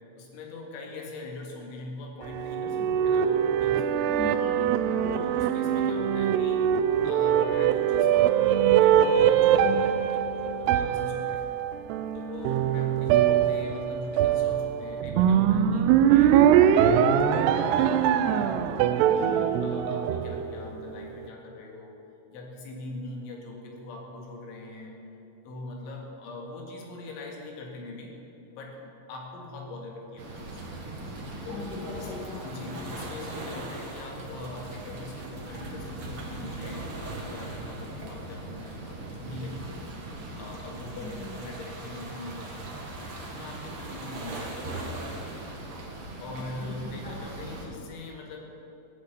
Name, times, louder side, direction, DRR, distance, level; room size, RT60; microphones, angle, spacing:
voice 1, 0.1-4.1 5.1-6.7 7.0-11.4 12.1-16.4 16.7-18.6 19.1-22.0 22.3-24.9 25.4-28.2 28.5-30.6 31.4-32.1 32.4-39.7 40.4-42.9 43.3-45.1 46.2-48.4, left 2 dB, 90° left, 0 dB, 4.3 m, -42 dB
sound 1, 2.2-20.8, right 9 dB, 80° right, 2.4 m, -23 dB
voice 2, 4.1-5.3 19.1-19.8 31.4-32.9 41.0-41.4 46.6-46.7 47.0-47.1, left 3 dB, 65° left, -5 dB, 1.1 m, -40 dB
sound 2, 30.2-47.7, right 2 dB, 55° right, 1.6 m, -39 dB
15.5 x 8.9 x 8.1 m, 2.9 s
omnidirectional pair, 5.3 m